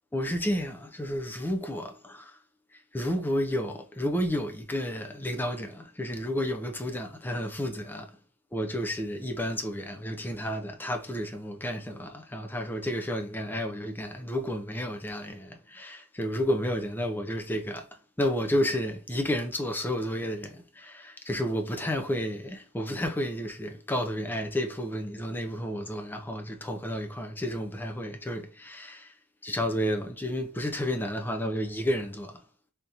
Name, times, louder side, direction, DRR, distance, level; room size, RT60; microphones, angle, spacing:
voice 1, 0.1-2.4 2.7-8.2 8.5-29.1 29.4-32.4, equal, 10° left, 0.4 m, -31 dB
3.5 x 2.6 x 2.8 m
head